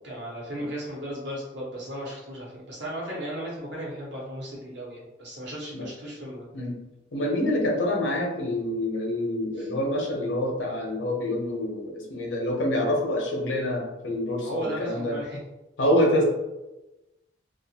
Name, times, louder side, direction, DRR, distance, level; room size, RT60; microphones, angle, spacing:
voice 1, 0.0-6.4 9.6-9.7 14.4-15.4, equal, 65° right, -5 dB, 1.0 m, -35 dB
voice 2, 7.1-15.1 15.8-16.2, left 1 dB, 75° left, -1 dB, 0.7 m, -26 dB
2.5 x 2.4 x 2.7 m, 1.0 s
head